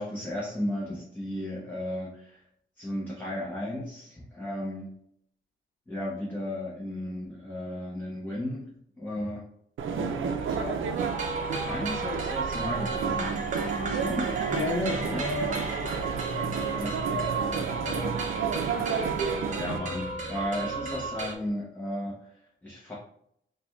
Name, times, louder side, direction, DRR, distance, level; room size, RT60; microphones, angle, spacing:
voice 1, 0.0-2.4 2.8-4.9 5.9-8.7 9.0-9.4 9.9-11.0 11.7-13.4 13.7-14.3 14.8-15.2 16.8-16.9 17.7-18.3 18.6-18.8 19.6-22.9, left 1 dB, 10° left, -6 dB, 0.8 m, -35 dB
sound 1, 9.8-19.8, right 6 dB, 80° right, 0.5 m, -31 dB
sound 2, 11.0-21.3, right 4 dB, 40° right, 0.7 m, -34 dB
sound 3, 13.4-21.5, left 2 dB, 40° left, 0.9 m, -48 dB
voice 2, 14.5-18.3, left 1 dB, 90° left, -2 dB, 0.8 m, -34 dB
4.9 x 2.2 x 3.3 m, 0.69 s
wide cardioid pair, 180°, 20 cm